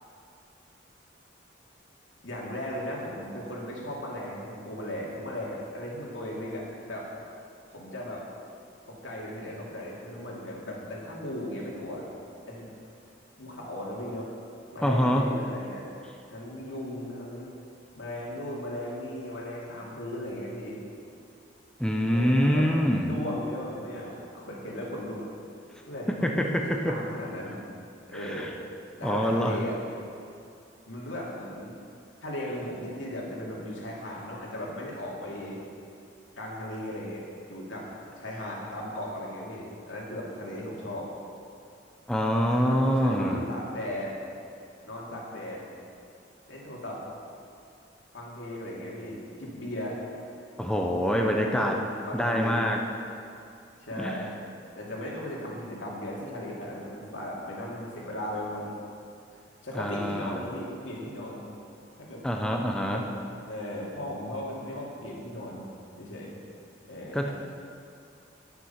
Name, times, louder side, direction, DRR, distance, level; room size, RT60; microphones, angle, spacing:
voice 1, 2.2-7.1 7.7-8.3 8.9-12.1 12.5-12.7 13.4-14.3 14.7-15.9 16.3-17.5 17.9-20.8 22.1-25.2 25.9-27.6 28.1-28.5 29.0-29.7 30.9-31.8 32.2-35.6 36.4-37.2 37.5-37.9 38.2-41.1 42.5-44.2 44.8-45.6 46.5-47.0 48.1-50.0 51.1-52.6 53.8-54.3 54.7-58.7 59.6-61.5 62.0-62.2 62.9-63.0 63.4-65.7 66.0-66.4 66.9-67.3, left 1 dB, 85° left, -4 dB, 2.5 m, -37 dB
voice 2, 14.8-15.3 21.8-23.1 26.2-27.0 28.1-28.5 29.0-29.6 42.1-43.4 50.6-51.8 52.1-52.8 54.0-54.3 59.7-60.4 62.2-63.0 67.1-67.3, equal, 5° left, 1 dB, 0.6 m, -25 dB
9.6 x 9.5 x 5.8 m, 2.4 s
head